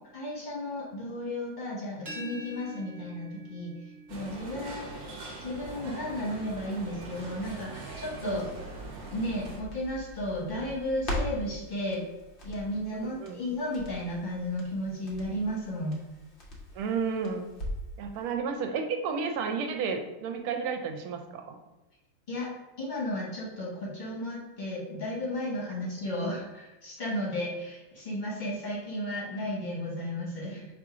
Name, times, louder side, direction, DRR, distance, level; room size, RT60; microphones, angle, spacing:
voice 1, 0.1-3.7 4.1-5.0 5.4-8.5 9.1-12.1 12.4-16.0 22.3-30.7, left 1 dB, 35° left, -5 dB, 0.8 m, -34 dB
sound 1, 2.1-7.8, right 1 dB, 30° right, 0.9 m, -48 dB
sound 2, 4.1-9.6, right 3 dB, 55° right, 1.1 m, -42 dB
Crackle, 8.2-18.0 18.3-18.4, equal, 80° left, 0.4 m, -41 dB
voice 2, 12.9-13.4 16.7-17.4 18.0-21.6, right 5 dB, 80° right, 4 dB, 1.4 m, -32 dB
4.3 x 2.5 x 4.8 m, 1.0 s
omnidirectional pair, 2.4 m